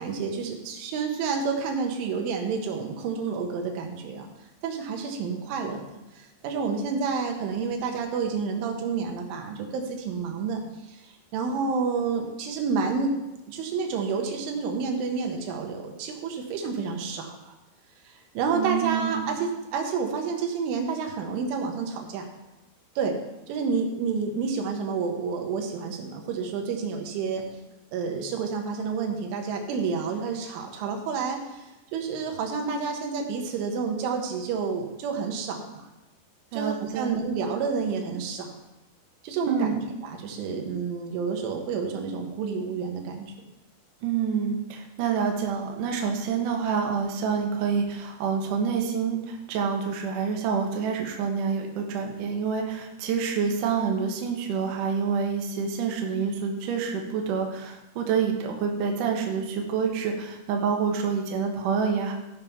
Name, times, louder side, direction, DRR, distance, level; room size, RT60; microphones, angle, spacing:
voice 1, 0.0-4.3 4.6-10.6 10.9-13.2 13.5-17.5 18.1-22.3 23.0-23.2 23.5-27.5 27.9-35.8 36.5-38.5 39.2-43.3, right 5 dB, 85° right, 3 dB, 3.8 m, -29 dB
voice 2, 18.5-19.2 36.5-37.2 39.5-39.7 44.0-62.1, right 6 dB, 65° right, 1 dB, 2.2 m, -27 dB
14.5 x 5.5 x 5.8 m, 0.98 s
omnidirectional pair, 5.4 m